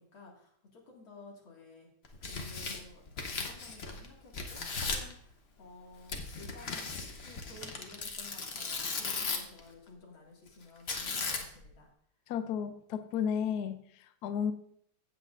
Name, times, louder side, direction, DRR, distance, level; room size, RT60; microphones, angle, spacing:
voice 1, 0.0-1.9 2.2-11.9, left 2 dB, 85° left, -2 dB, 3.0 m, -53 dB
Tearing, 2.0-4.1 4.3-5.1 6.1-9.6 10.9-11.7, left 4 dB, 40° left, 1.0 m, -37 dB
voice 2, 12.3-13.8 14.2-14.5, left 8 dB, 70° left, 10 dB, 1.0 m, -32 dB
15.5 x 7.7 x 2.5 m, 0.67 s
omnidirectional pair, 2.1 m